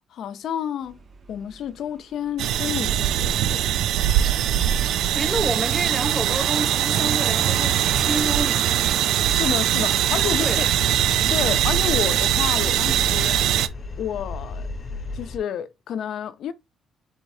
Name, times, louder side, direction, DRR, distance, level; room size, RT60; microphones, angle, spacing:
voice 1, 0.1-1.0 1.3-3.6 9.3-10.7 11.3-13.4 14.0-14.7 15.1-16.5, left 9 dB, 70° left, 0.6 m, -30 dB
Motorcycle, 0.8-15.1, right 4 dB, 50° right, 1.4 m, -44 dB
sound 1, 2.4-13.7, right 11 dB, 85° right, 0.4 m, -21 dB
voice 2, 5.1-8.8 10.2-10.7, right 1 dB, 20° right, 0.9 m, -29 dB
sound 2, 10.1-15.4, left 3 dB, 45° left, 0.9 m, -34 dB
4.8 x 3.9 x 2.7 m
cardioid pair, 90°, 0 cm